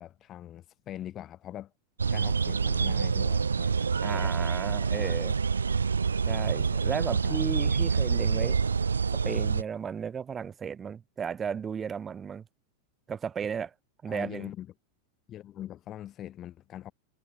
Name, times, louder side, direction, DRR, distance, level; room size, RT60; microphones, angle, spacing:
voice 1, 0.0-1.7 2.1-4.3 4.9-5.2 7.2-7.6 14.1-14.7 15.3-16.9, left 12 dB, 30° left, 7.4 m, -42 dB
sound 1, 2.0-9.6, right 5 dB, 75° right, 0.5 m, -27 dB
voice 2, 4.0-5.3 6.3-8.6 9.2-12.4 13.1-13.7 14.0-14.5, right 7 dB, 20° right, 1.6 m, -34 dB
figure-of-eight pair, 90°, 0 cm